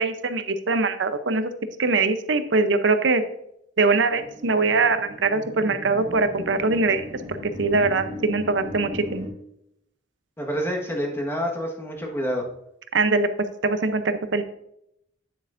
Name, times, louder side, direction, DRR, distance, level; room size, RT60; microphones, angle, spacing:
voice 1, 0.0-1.5 1.8-3.2 3.8-9.3 12.9-13.3 13.6-14.4, right 3 dB, 80° right, 10 dB, 0.7 m, -22 dB
sound 1, 4.1-9.3, equal, 35° right, 1.2 m, -37 dB
voice 2, 10.4-12.4, equal, 15° left, 0 dB, 1.4 m, -27 dB
9.0 x 7.7 x 2.6 m, 0.78 s
head